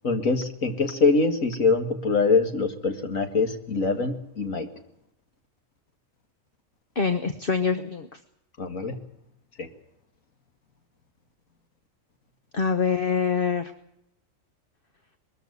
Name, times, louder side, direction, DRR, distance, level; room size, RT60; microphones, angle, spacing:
voice 1, 0.0-4.7 8.6-9.0 9.6-9.7, left 4 dB, 90° left, 6 dB, 2.5 m, -24 dB
voice 2, 6.9-8.2 12.5-13.7, left 5 dB, 45° left, 9 dB, 1.3 m, -25 dB
22.0 x 14.5 x 9.5 m, 0.79 s
omnidirectional pair, 1.4 m